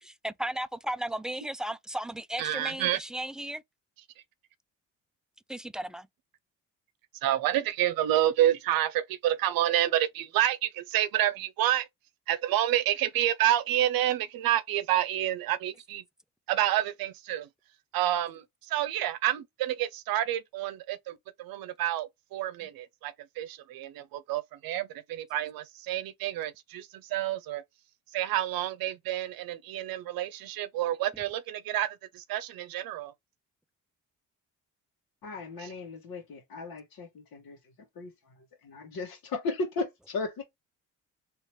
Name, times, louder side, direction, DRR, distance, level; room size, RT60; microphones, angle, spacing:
voice 1, 0.0-3.6 5.5-6.1 31.1-31.2, right 1 dB, ahead, 0.4 m, -35 dB
voice 2, 2.4-3.0 7.2-11.9 12.3-16.0 16.5-17.5 17.9-27.6 28.1-33.1, right 13 dB, 70° right, 0.7 m, -29 dB
voice 3, 35.2-40.4, left 3 dB, 70° left, 1.6 m, -36 dB
3.2 x 2.9 x 3.1 m
supercardioid pair, 65°, 36 cm